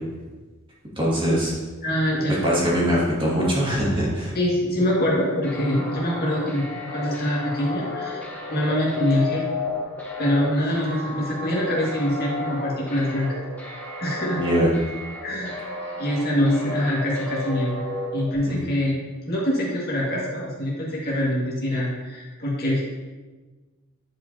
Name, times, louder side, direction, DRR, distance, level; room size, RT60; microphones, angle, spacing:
voice 1, 1.0-1.5 2.4-4.3 14.4-14.7 18.5-18.6, equal, 25° right, -6 dB, 1.9 m, -22 dB
voice 2, 1.8-2.4 4.3-9.5 10.2-13.4 14.0-14.4 15.2-15.6 16.0-17.8 18.1-19.0 19.3-22.8, left 1 dB, 50° left, -4 dB, 1.7 m, -24 dB
sound 1, 5.4-18.4, left 3 dB, 10° left, 1.1 m, -33 dB
10.0 x 4.7 x 2.7 m, 1.3 s
head